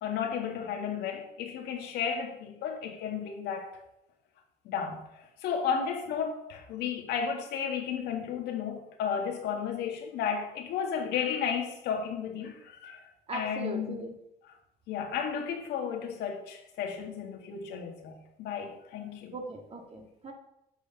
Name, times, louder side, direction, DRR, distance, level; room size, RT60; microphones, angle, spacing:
voice 1, 0.0-3.7 4.7-5.0 5.4-14.0 14.4-14.5 14.9-19.3, left 7 dB, 85° left, 1.9 m, -33 dB
voice 2, 13.3-14.1 19.3-20.3, right 2 dB, 35° right, 1.9 m, -39 dB
8.3 x 6.1 x 5.8 m
cardioid pair, 110°, 17 cm